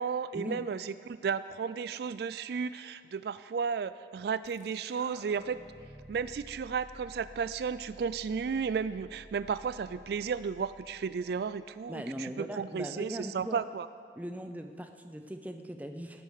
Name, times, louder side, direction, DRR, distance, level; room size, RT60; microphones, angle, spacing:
voice 1, 0.0-5.6 6.1-13.9, right 6 dB, 60° right, 15 dB, 0.3 m, -33 dB
sound 1, 4.4-11.7, right 1 dB, 40° right, 1.8 m, -53 dB
voice 2, 11.9-13.6 14.2-16.2, equal, 10° right, 6 dB, 0.6 m, -39 dB
18.5 x 8.4 x 6.6 m, 2.2 s
head